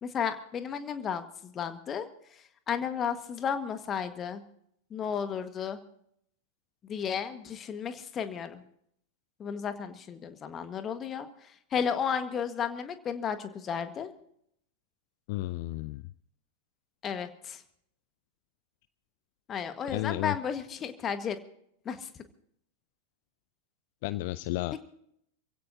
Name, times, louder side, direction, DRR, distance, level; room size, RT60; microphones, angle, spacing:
voice 1, 0.0-2.1 2.7-4.4 4.9-5.8 6.9-8.6 9.4-11.3 11.7-14.1 17.0-17.6 19.5-21.4 21.8-22.1 24.7-24.8, left 7 dB, 25° left, 9 dB, 1.6 m, -33 dB
voice 2, 15.3-16.0 19.9-20.4 24.0-24.8, left 18 dB, 50° left, 16 dB, 0.5 m, -32 dB
27.5 x 16.5 x 2.8 m, 0.72 s
figure-of-eight pair, 90°, 0 cm